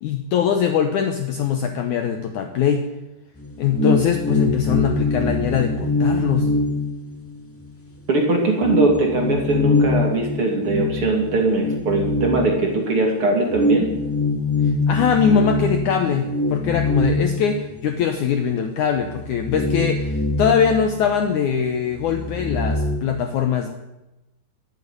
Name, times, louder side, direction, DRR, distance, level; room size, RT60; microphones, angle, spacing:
voice 1, 0.0-2.8 3.6-6.5 14.6-23.7, left 7 dB, 70° left, 6 dB, 1.9 m, -22 dB
sound 1, 3.4-7.7 8.0-8.1 8.6-13.0 13.5-18.2 18.5-18.6 19.0-21.5 21.8-23.0, left 2 dB, 15° left, 0.4 m, -24 dB
voice 2, 8.1-13.9, right 2 dB, 40° right, 0 dB, 2.7 m, -21 dB
11.5 x 9.5 x 9.5 m, 0.99 s
omnidirectional pair, 4.4 m